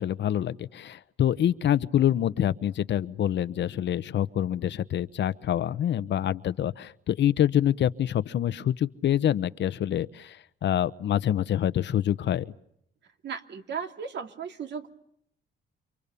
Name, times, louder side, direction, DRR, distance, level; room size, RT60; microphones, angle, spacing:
voice 1, 0.0-12.5, left 10 dB, 65° left, 15 dB, 1.0 m, -26 dB
voice 2, 13.2-15.0, right 6 dB, 60° right, 6 dB, 2.7 m, -36 dB
29.5 x 26.0 x 7.0 m, 0.74 s
cardioid pair, 90°, 20 cm